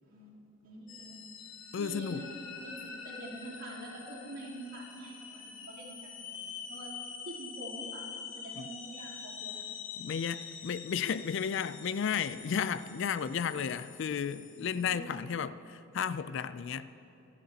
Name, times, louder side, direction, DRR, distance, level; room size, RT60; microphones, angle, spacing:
voice 1, 0.0-1.2 1.7-2.3 2.6-6.9 7.2-8.0 8.3-9.7 14.7-15.1, right 1 dB, 65° right, 3.2 m, -46 dB
sound 1, 0.9-14.8, left 6 dB, 75° left, 1.2 m, -46 dB
voice 2, 1.7-2.3 8.6-8.7 10.0-16.9, left 7 dB, 55° left, 0.3 m, -33 dB
25.5 x 11.5 x 2.9 m
head